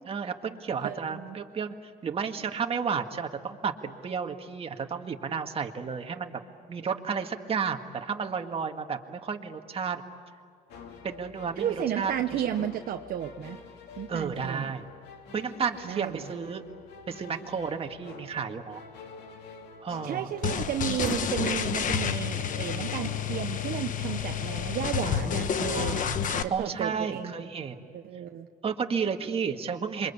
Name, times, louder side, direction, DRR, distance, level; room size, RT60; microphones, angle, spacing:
voice 1, 0.1-6.4 6.7-10.0 11.0-12.4 14.1-14.8 15.3-16.6 17.1-18.8 19.8-20.3 25.7-27.8 28.6-30.1, right 6 dB, 35° right, 4 dB, 1.8 m, -32 dB
voice 2, 0.8-1.4 11.6-13.6 14.0-14.7 15.8-16.2 20.0-26.0 26.3-27.3 27.9-28.5, right 10 dB, 60° right, 5 dB, 1.0 m, -33 dB
sound 1, 10.7-25.5, left 6 dB, 80° left, 2.6 m, -46 dB
sound 2, 20.4-26.4, left 8 dB, 50° left, 1.3 m, -30 dB
sound 3, 21.0-24.4, right 2 dB, ahead, 3.4 m, -42 dB
27.0 x 23.5 x 8.4 m, 2.2 s
cardioid pair, 110°, 17 cm